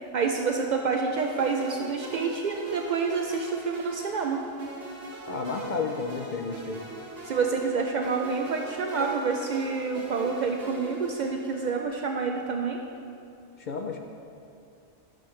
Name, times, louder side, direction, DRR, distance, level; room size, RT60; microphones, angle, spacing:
voice 1, 0.1-4.4 7.2-12.8, right 5 dB, 75° right, 2 dB, 0.4 m, -28 dB
sound 1, 1.2-11.8, right 2 dB, 50° right, 1.6 m, -41 dB
voice 2, 5.3-6.8 13.6-14.0, left 4 dB, 60° left, 3 dB, 0.5 m, -32 dB
11.5 x 6.5 x 3.2 m, 2.5 s
omnidirectional pair, 1.3 m